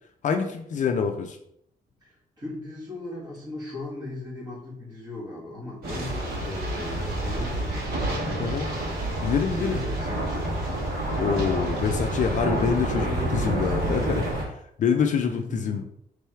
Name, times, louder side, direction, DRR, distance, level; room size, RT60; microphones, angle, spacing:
voice 1, 0.2-1.4 8.4-8.7 9.2-9.8 11.2-13.1 13.3-14.2 14.8-15.8, left 6 dB, 50° left, 5 dB, 0.4 m, -26 dB
voice 2, 2.0-8.8 9.5-10.6 12.3-14.2 15.2-15.8, left 2 dB, 25° right, -7 dB, 1.8 m, -37 dB
sound 1, 5.8-14.4, right 1 dB, 80° right, 1.8 m, -28 dB
3.4 x 3.2 x 4.4 m, 0.72 s
wide cardioid pair, 180°, 16 cm